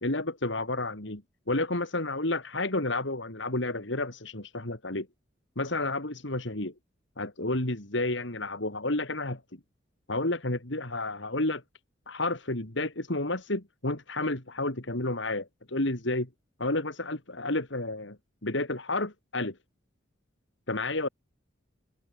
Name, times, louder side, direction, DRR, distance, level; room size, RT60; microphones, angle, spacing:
voice 1, 0.0-1.2 1.5-5.1 5.6-6.7 7.2-9.4 10.1-11.6 12.1-16.3 16.6-18.2 18.4-19.5 20.7-21.1, left 2 dB, 70° left, 2.9 m, -31 dB
head